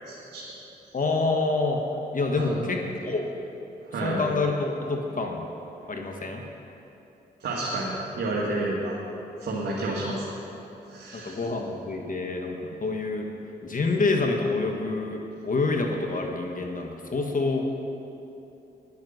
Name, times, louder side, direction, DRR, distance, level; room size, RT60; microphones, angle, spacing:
voice 1, 0.1-0.4 2.3-3.1 3.9-4.2 7.4-9.0 9.4-10.2 10.9-11.4, right 2 dB, 75° right, -6 dB, 2.1 m, -30 dB
voice 2, 0.9-1.8 2.1-2.8 3.0-3.3 4.0-5.4 5.9-6.4 11.1-13.3 13.6-17.6, left 3 dB, 45° left, 2 dB, 1.5 m, -27 dB
10.5 x 8.0 x 9.4 m, 2.9 s
supercardioid pair, 50°, 19 cm